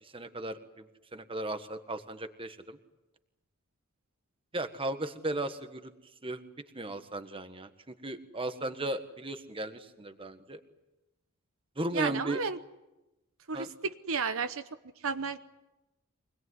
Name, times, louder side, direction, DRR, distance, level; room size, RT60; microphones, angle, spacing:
voice 1, 0.0-2.8 4.5-5.9 6.2-6.4 6.7-10.6 11.8-12.4 13.5-13.7, right 2 dB, 25° right, 8 dB, 1.5 m, -36 dB
voice 2, 11.9-12.6 13.5-14.6 15.0-15.4, right 5 dB, 65° right, 9 dB, 1.0 m, -32 dB
25.0 x 20.0 x 9.7 m, 1.0 s
head